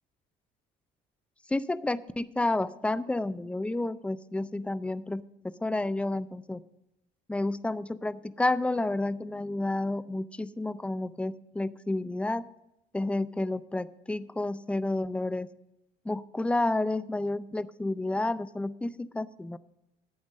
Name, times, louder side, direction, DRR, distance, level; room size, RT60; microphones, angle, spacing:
voice 1, 1.5-5.2 5.6-6.6 7.3-12.5 12.9-15.5 16.0-19.6, left 2 dB, 5° left, 15 dB, 0.4 m, -30 dB
8.9 x 8.7 x 6.4 m, 0.87 s
cardioid pair, 110°, 17 cm